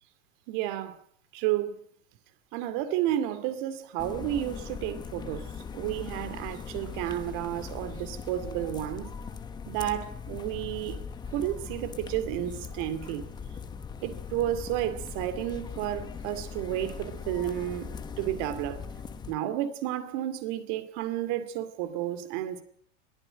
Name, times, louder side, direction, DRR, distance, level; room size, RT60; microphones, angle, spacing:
voice 1, 0.5-1.0 1.3-1.8 2.5-9.1 9.7-11.0 11.3-13.3 14.0-17.9 18.2-18.8 19.3-22.6, right 12 dB, 40° right, 2.4 m, -31 dB
sound 1, 4.0-19.3, left 6 dB, 10° left, 0.9 m, -40 dB
22.0 x 14.0 x 8.8 m
supercardioid pair, 165°, 37 cm